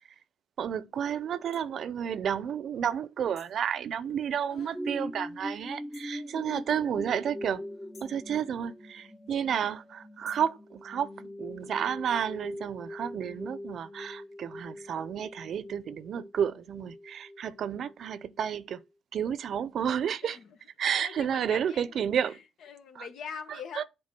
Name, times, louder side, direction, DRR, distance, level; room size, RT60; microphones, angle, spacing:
voice 1, 0.6-7.6 8.0-18.8 19.1-20.4 20.8-22.4 23.0-23.1 23.8-23.9, right 8 dB, 65° right, 0.6 m, -31 dB
sound 1, 1.5-1.7 3.3-3.6 5.9-6.2 7.9-8.2 10.2-10.6, left 4 dB, 50° left, 2.3 m, -56 dB
sound 2, 4.7-18.3 18.8-18.9, left 1 dB, 10° left, 0.8 m, -42 dB
voice 2, 6.1-6.5 20.2-20.6 20.8-23.8, left 7 dB, 70° left, 1.4 m, -44 dB
7.6 x 3.8 x 6.0 m
cardioid pair, 90°, 0 cm